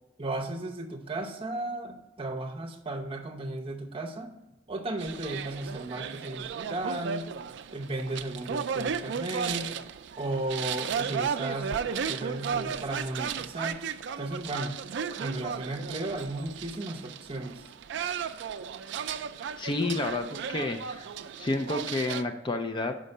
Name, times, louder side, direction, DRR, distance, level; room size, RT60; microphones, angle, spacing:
voice 1, 0.2-4.3 4.7-7.3 7.7-9.7 10.2-13.8 14.2-14.8 15.2-17.6, right 2 dB, 30° right, 2 dB, 0.8 m, -35 dB
sound 1, 5.0-22.2, right 7 dB, 65° right, 0.4 m, -35 dB
voice 2, 19.6-21.1 21.4-23.0, left 2 dB, 25° left, 6 dB, 0.4 m, -30 dB
5.5 x 5.1 x 6.5 m, 0.88 s
head